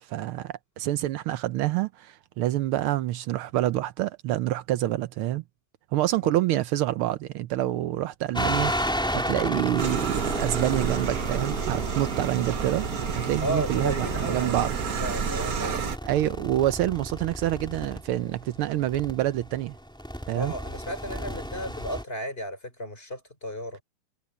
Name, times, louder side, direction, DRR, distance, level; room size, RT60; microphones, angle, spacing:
voice 1, 0.0-5.4 5.9-12.8 13.1-14.7 16.1-19.7 20.3-20.5, right 14 dB, 80° right, 1.6 m, -27 dB
sound 1, 8.3-22.0, equal, ahead, 3.7 m, -33 dB
sound 2, 9.8-16.0, right 7 dB, 50° right, 1.4 m, -30 dB
voice 2, 13.4-15.9 20.3-23.8, equal, 25° left, 4.8 m, -34 dB
omnidirectional pair, 2.4 m